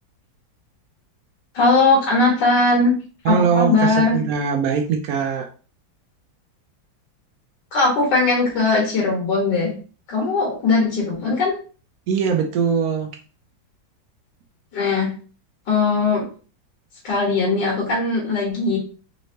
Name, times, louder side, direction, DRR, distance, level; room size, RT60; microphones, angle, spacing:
voice 1, 1.5-2.9 3.3-4.2 7.7-9.7 10.1-11.6 14.7-15.1 15.7-16.3 17.0-18.8, left 3 dB, 65° left, -3 dB, 2.0 m, -19 dB
voice 2, 3.2-5.5 12.1-13.1, right 6 dB, 90° right, 3 dB, 0.7 m, -21 dB
4.1 x 3.1 x 2.7 m, 0.38 s
omnidirectional pair, 2.1 m